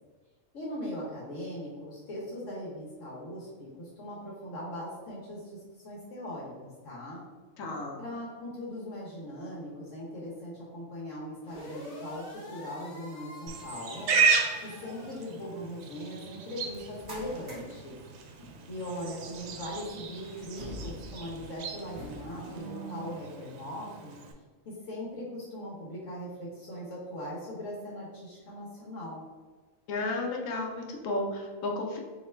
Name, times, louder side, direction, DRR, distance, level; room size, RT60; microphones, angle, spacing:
voice 1, 0.5-7.2 8.0-12.2 12.5-14.1 14.6-18.0 18.7-24.2 24.6-29.2, left 1 dB, 70° left, -4 dB, 1.3 m, -40 dB
voice 2, 7.6-8.0 29.9-32.0, left 2 dB, 90° left, 1 dB, 1.1 m, -33 dB
sound 1, 11.4-15.2, equal, 30° left, 1.5 m, -47 dB
Livestock farm animals working animals, 13.5-24.3, right 5 dB, 85° right, 1.0 m, -34 dB
sound 2, 16.7-22.6, left 1 dB, 25° right, 1.6 m, -47 dB
3.2 x 2.9 x 4.3 m, 1.4 s
omnidirectional pair, 1.4 m